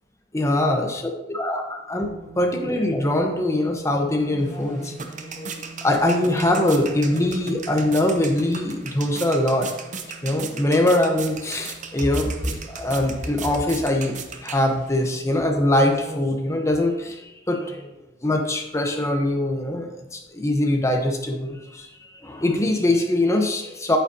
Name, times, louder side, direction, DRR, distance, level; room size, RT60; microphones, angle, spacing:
voice 1, 0.3-2.1 2.3-5.5 5.8-9.7 10.2-14.1 14.4-17.9 18.2-21.9 22.2-24.0, left 1 dB, 15° left, 3 dB, 1.0 m, -22 dB
sound 1, 2.1-15.2, right 3 dB, 80° right, 2.5 m, -46 dB
sound 2, 4.4-15.1, right 5 dB, 45° right, 0.7 m, -37 dB
8.8 x 8.1 x 2.8 m, 0.96 s
head